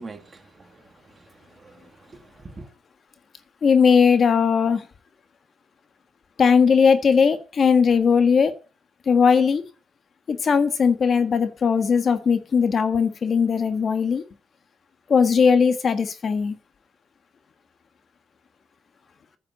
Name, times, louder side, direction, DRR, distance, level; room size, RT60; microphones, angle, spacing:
voice 1, 0.0-2.7, right 3 dB, 30° right, 2.4 m, -44 dB
voice 2, 3.6-4.8 6.4-8.5 9.1-9.6 10.3-14.2 15.1-16.6, left 6 dB, 50° left, 1.5 m, -19 dB
9.7 x 7.3 x 7.9 m
cardioid pair, 90°, 0 cm